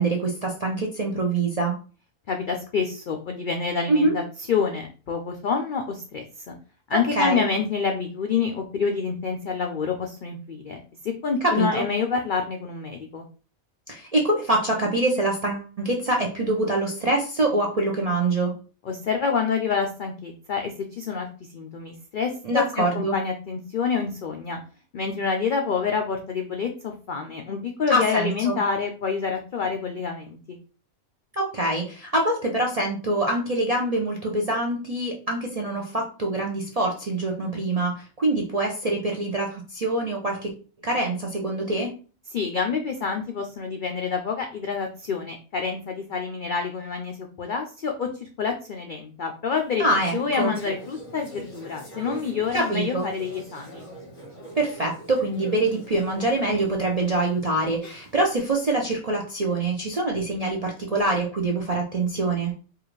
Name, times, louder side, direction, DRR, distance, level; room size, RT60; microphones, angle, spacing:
voice 1, 0.0-1.8 3.9-4.1 6.9-7.5 11.4-11.9 13.9-18.5 22.4-23.2 27.9-28.6 31.3-40.5 40.8-41.9 49.8-50.5 52.5-53.1 54.6-62.5, right 2 dB, 50° right, 0 dB, 0.4 m, -25 dB
voice 2, 2.3-4.2 4.5-6.5 6.9-13.2 18.8-21.3 21.5-22.7 22.9-24.6 24.9-30.6 42.3-49.9 50.1-53.8, left 5 dB, 80° left, 3 dB, 0.4 m, -27 dB
Conversation / Chatter, 49.5-58.5, right 1 dB, 55° left, 2.1 m, -42 dB
4.7 x 2.5 x 3.1 m, 0.37 s
omnidirectional pair, 1.5 m